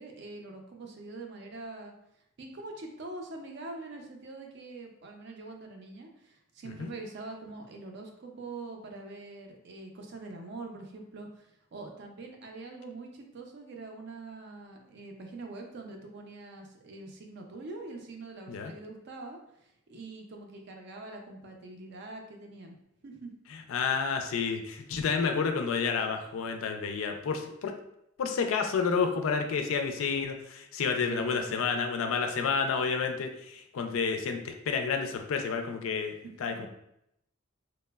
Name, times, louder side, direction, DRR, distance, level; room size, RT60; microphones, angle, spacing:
voice 1, 0.0-1.9 2.4-19.4 19.9-22.8 23.0-23.3 31.1-31.5 36.2-36.7, right 3 dB, 55° right, 2 dB, 0.4 m, -44 dB
voice 2, 23.5-27.7 28.2-36.1 36.4-36.7, left 5 dB, 80° left, 5 dB, 0.3 m, -30 dB
3.0 x 2.0 x 2.2 m, 0.79 s
head